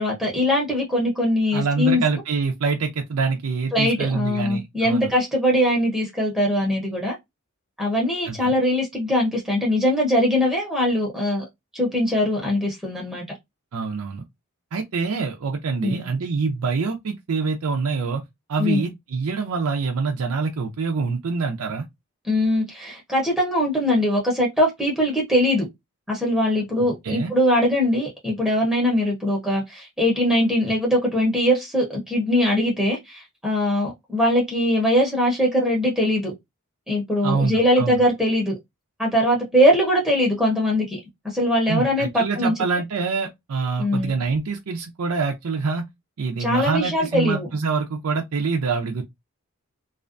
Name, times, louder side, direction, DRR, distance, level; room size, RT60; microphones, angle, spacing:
voice 1, 0.0-2.0 3.7-7.2 7.8-11.4 11.7-13.2 15.8-16.1 18.6-18.9 22.2-25.7 26.1-36.3 36.9-38.5 39.0-42.5 43.8-44.2 46.4-47.5, left 1 dB, 5° right, 0.8 m, -21 dB
voice 2, 1.5-5.1 8.3-8.5 13.7-14.2 14.7-18.2 18.5-21.9 26.8-27.3 37.2-38.0 41.7-45.8 46.2-49.0, right 4 dB, 75° right, 0.5 m, -25 dB
2.4 x 2.2 x 2.4 m
head